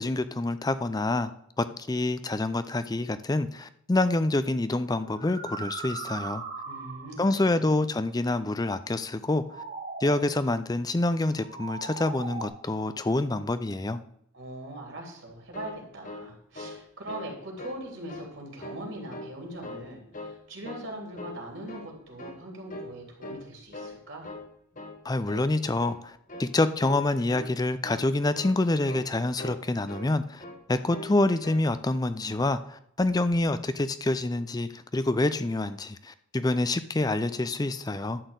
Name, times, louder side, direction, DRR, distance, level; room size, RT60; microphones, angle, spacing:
voice 1, 0.0-1.3 1.6-6.4 7.2-9.6 10.0-14.0 25.0-38.2, left 2 dB, 15° left, 13 dB, 0.4 m, -27 dB
sound 1, 4.0-4.2 5.0-7.3 9.2-10.4 11.3-12.5, right 4 dB, 35° right, 1.6 m, -39 dB
voice 2, 6.6-7.8 14.3-24.3, right 1 dB, 60° right, 0 dB, 3.1 m, -41 dB
sound 2, 15.3-16.8 17.1-17.3 17.6-18.3 18.6-19.4 19.6-20.4 20.6-20.9 21.2-21.9 22.2-22.4 22.7-23.0 23.2-24.0 24.2-24.5 24.8-25.0 25.3-25.5 25.8-26.0 26.3-26.5 26.8-27.1 27.3-27.6 27.8-28.1 28.3-28.6 28.9-29.1 29.4-30.1 30.4-30.6 30.9-31.2 31.4-31.7, left 1 dB, 35° left, 1.2 m, -41 dB
11.5 x 4.3 x 8.1 m, 0.72 s
head